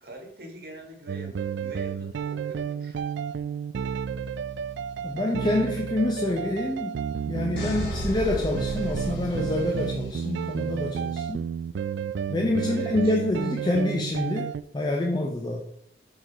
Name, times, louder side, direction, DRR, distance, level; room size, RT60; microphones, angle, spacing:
voice 1, 0.0-3.0 7.6-8.0 12.6-13.3, right 1 dB, 60° right, 2 dB, 1.6 m, -43 dB
sound 1, 1.1-14.6, right 7 dB, 85° right, 0.3 m, -31 dB
voice 2, 5.0-7.0 7.3-11.4 12.3-15.6, left 1 dB, 25° left, 1 dB, 0.6 m, -27 dB
sound 2, 7.6-10.4, equal, 80° left, 2.5 m, -35 dB
6.4 x 4.7 x 4.0 m, 0.68 s
head